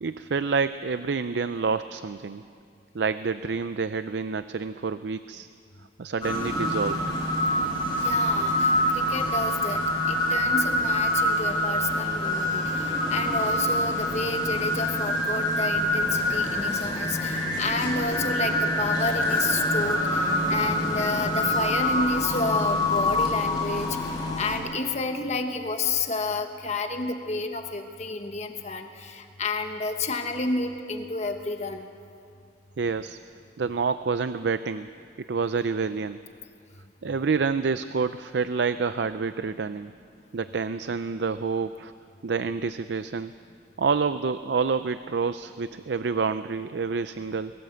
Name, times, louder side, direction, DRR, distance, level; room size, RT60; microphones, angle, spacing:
voice 1, 0.0-2.4 2.9-5.5 6.0-7.0 32.8-33.2 33.6-34.9 35.3-36.2 37.0-39.9 40.3-41.9 42.2-43.3 43.8-47.5, right 5 dB, 70° right, 12 dB, 0.5 m, -28 dB
sound 1, 6.2-24.6, left 1 dB, 25° left, 6.7 m, -25 dB
voice 2, 8.0-31.9, left 3 dB, 40° left, 5 dB, 1.3 m, -30 dB
22.0 x 18.5 x 7.9 m, 2.3 s
head